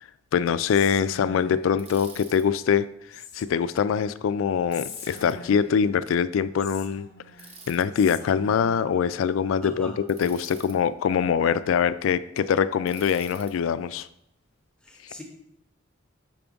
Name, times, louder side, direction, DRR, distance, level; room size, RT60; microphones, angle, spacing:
voice 1, 0.3-2.9 3.3-7.1 7.7-14.1, left 7 dB, 80° left, 15 dB, 0.3 m, -23 dB
Whispering, 0.7-1.8 3.1-3.8 4.7-5.9 6.6-7.5 7.9-8.8, left 5 dB, 55° left, 0.8 m, -43 dB
Bicycle, 1.8-2.4 4.7-5.3 7.4-7.9 10.1-10.8 12.9-13.5, right 4 dB, 30° right, 0.9 m, -47 dB
voice 2, 9.6-10.0 14.8-15.2, left 1 dB, 5° left, 1 dB, 0.8 m, -40 dB
5.9 x 3.5 x 5.1 m, 0.79 s
head